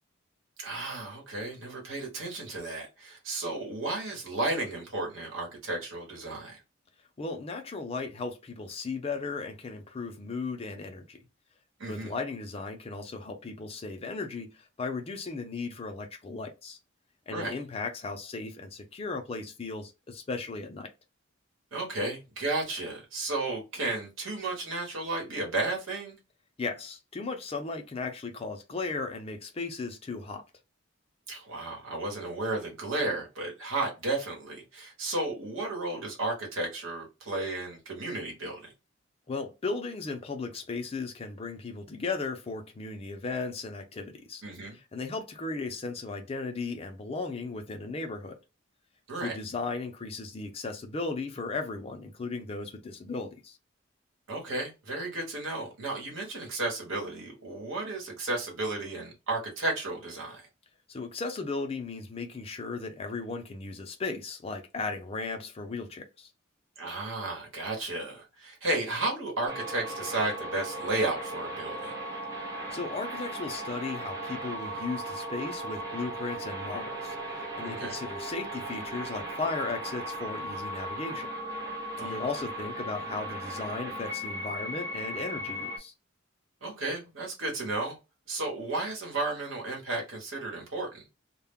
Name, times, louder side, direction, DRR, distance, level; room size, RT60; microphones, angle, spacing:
voice 1, 0.6-6.6 11.8-12.1 17.3-17.5 21.7-26.2 31.3-38.7 44.4-44.8 49.1-49.3 54.3-60.5 66.8-71.9 77.6-78.0 82.0-82.2 86.6-88.0 88.3-91.0, right 2 dB, 75° right, 1.0 m, -33 dB
voice 2, 7.2-11.2 11.9-16.8 17.3-20.9 26.6-30.4 39.3-44.4 44.7-48.3 49.2-53.6 60.9-66.3 72.7-81.3 82.0-85.9, left 3 dB, 30° left, 0.4 m, -36 dB
sound 1, 69.5-85.8, right 1 dB, 15° right, 0.6 m, -37 dB
2.2 x 2.1 x 3.4 m
head